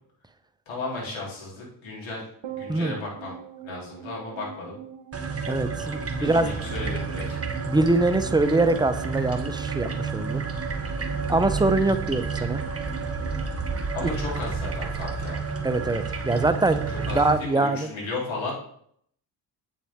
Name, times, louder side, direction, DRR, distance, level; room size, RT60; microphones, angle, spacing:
voice 1, 0.7-2.2 2.5-3.4 3.6-4.8 6.2-7.4 13.9-15.4 17.1-18.5, left 3 dB, 70° left, -3 dB, 3.7 m, -34 dB
sound 1, 2.4-15.0 15.2-15.3, right 9 dB, 60° right, 1.6 m, -43 dB
sound 2, 5.1-17.4, right 4 dB, 30° right, 1.5 m, -30 dB
voice 2, 5.5-6.5 7.7-10.4 11.3-12.6 15.6-17.9, right 2 dB, 10° right, 10 dB, 0.8 m, -23 dB
8.4 x 7.3 x 3.7 m, 0.65 s
supercardioid pair, 55°, 49 cm